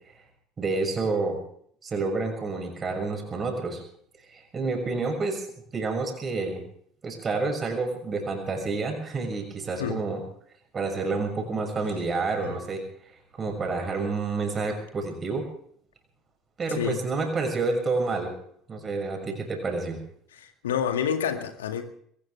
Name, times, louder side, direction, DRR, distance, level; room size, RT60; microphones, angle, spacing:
voice 1, 0.6-1.4 1.8-3.8 4.3-5.5 5.7-6.6 7.0-10.2 10.7-12.8 13.3-15.5 16.6-18.3 18.7-20.0, right 3 dB, 30° right, 3 dB, 6.4 m, -29 dB
voice 2, 20.4-21.8, left 8 dB, 75° left, 6 dB, 2.1 m, -28 dB
22.0 x 19.0 x 3.5 m, 0.63 s
figure-of-eight pair, 65°, 0 cm